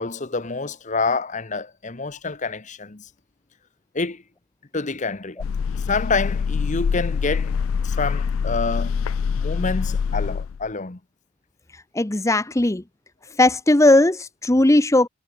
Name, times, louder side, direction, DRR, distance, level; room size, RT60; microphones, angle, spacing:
voice 1, 0.0-3.1 3.9-4.2 4.7-5.4 5.9-7.6 7.8-9.1 9.4-11.0, left 4 dB, 35° left, 1.1 m, -27 dB
sound 1, 5.4-10.7, left 6 dB, 70° left, 0.4 m, -25 dB
voice 2, 11.9-12.8 13.4-15.1, left 2 dB, 15° left, 0.6 m, -17 dB
head